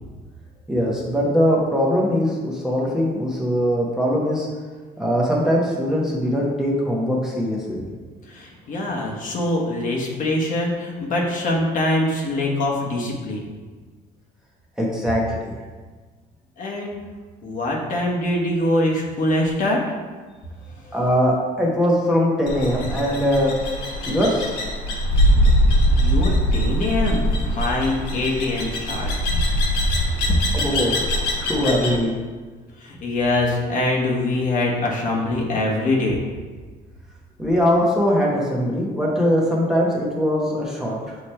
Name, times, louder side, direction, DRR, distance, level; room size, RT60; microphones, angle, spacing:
voice 1, 0.7-4.5 5.0-7.8 14.8-15.5 20.9-23.6 24.0-24.6 30.5-30.9 31.4-32.1 37.4-41.2, equal, 5° right, -4 dB, 1.2 m, -21 dB
voice 2, 8.3-13.5 16.6-17.0 17.4-19.8 20.8-20.9 25.9-29.1 30.2-30.3 32.8-36.2, left 1 dB, 50° left, -2 dB, 1.2 m, -23 dB
sound 1, 22.5-32.0, equal, 80° left, 1.1 m, -22 dB
6.9 x 3.1 x 4.4 m, 1.4 s
cardioid pair, 110°, 17 cm